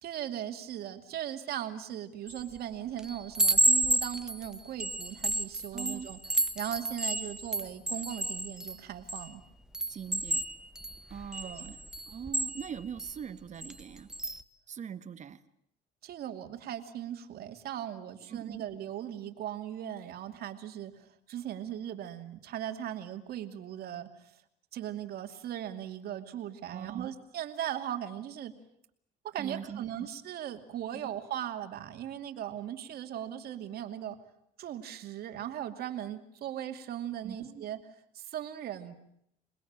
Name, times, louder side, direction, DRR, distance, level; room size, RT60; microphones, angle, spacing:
voice 1, 0.0-6.2 6.5-9.4 11.4-11.7 16.0-24.1 24.7-28.6 29.2-34.2 34.6-37.8 38.1-39.0, right 11 dB, 65° right, 6 dB, 2.6 m, -38 dB
Chime, 2.3-2.6 3.0-9.3 9.7-13.1 13.6-13.8 14.1-14.4, right 1 dB, 5° right, 1.3 m, -31 dB
voice 2, 5.7-6.1 9.9-10.4 11.1-11.8 12.1-14.1 14.7-15.4 18.3-18.6 26.7-27.1 29.4-30.1 30.9-31.0 37.2-37.7, right 7 dB, 45° right, 11 dB, 1.5 m, -42 dB
28.0 x 20.5 x 8.9 m, 0.74 s
cardioid pair, 110°, 17 cm